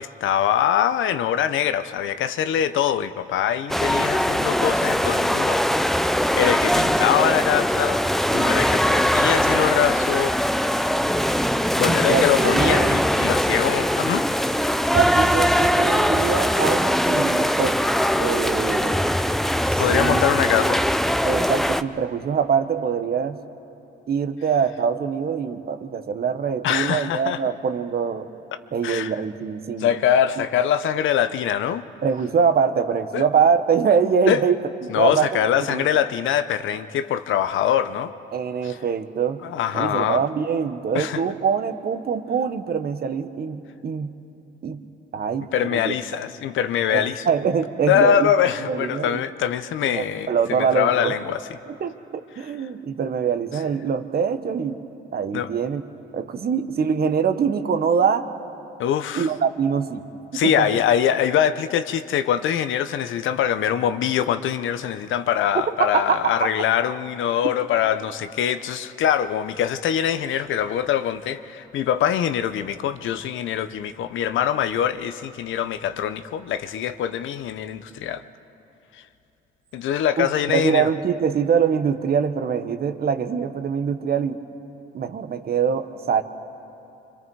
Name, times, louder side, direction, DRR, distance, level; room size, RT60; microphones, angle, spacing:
voice 1, 0.0-5.6 6.4-8.0 8.3-10.4 11.8-14.3 19.8-20.8 26.6-27.4 28.8-29.1 29.8-31.9 33.1-33.2 34.3-34.4 34.9-38.1 38.6-38.8 39.4-40.2 40.9-41.2 45.5-47.3 47.9-51.6 52.4-52.5 53.5-53.6 55.3-55.5 58.8-59.3 60.3-78.2 78.9-79.0 79.7-80.9, left 9 dB, 80° left, 11 dB, 0.8 m, -23 dB
sound 1, 3.7-21.8, equal, ahead, 0.5 m, -21 dB
voice 2, 12.1-13.0 14.9-17.8 18.2-19.0 19.7-20.2 21.2-23.4 24.1-28.3 28.7-29.9 32.0-34.6 34.9-35.4 35.7-35.8 38.3-39.4 39.7-44.1 44.6-44.8 45.1-45.9 46.9-48.3 48.6-49.2 49.8-51.2 51.7-54.8 55.1-55.8 56.1-58.3 59.1-60.0 60.3-60.7 65.8-66.3 80.2-84.4 84.9-86.2, right 6 dB, 50° right, 9 dB, 1.1 m, -23 dB
27.0 x 24.5 x 4.7 m, 2.9 s
cardioid pair, 90°, 20 cm